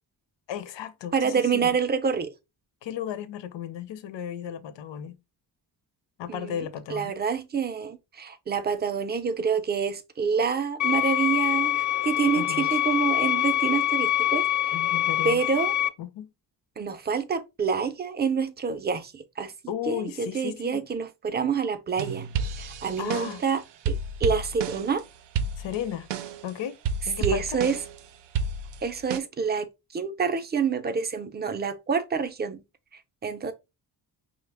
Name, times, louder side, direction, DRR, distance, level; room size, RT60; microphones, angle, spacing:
voice 1, 0.5-1.8 2.8-5.2 6.2-7.1 12.4-12.8 14.7-15.4 16.0-16.3 19.7-20.8 23.0-23.4 25.6-26.1 26.4-26.8 27.1-27.6, left 10 dB, 90° left, 0.7 m, -35 dB
voice 2, 1.1-2.3 6.3-14.8 15.2-15.7 16.8-19.5 19.9-22.3 22.6-23.9 24.2-25.0 27.2-27.8 28.8-32.6 33.2-33.5, right 6 dB, 25° right, 0.4 m, -27 dB
sound 1, 10.8-15.9, left 13 dB, 45° left, 0.5 m, -25 dB
sound 2, 22.0-23.5 23.9-25.0 25.4-26.5 26.9-28.0 28.4-29.2, right 5 dB, 80° right, 0.5 m, -31 dB
5.3 x 2.0 x 3.3 m
wide cardioid pair, 140°, 43 cm